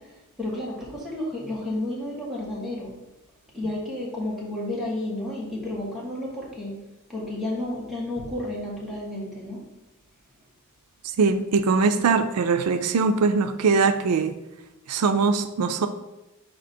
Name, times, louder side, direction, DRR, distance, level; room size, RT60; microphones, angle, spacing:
voice 1, 0.4-2.9 3.5-6.8 7.1-9.6, left 1 dB, ahead, -5 dB, 1.5 m, -31 dB
voice 2, 11.2-14.4 14.9-15.9, right 4 dB, 85° right, 9 dB, 0.4 m, -21 dB
5.1 x 4.3 x 4.2 m, 1.0 s
head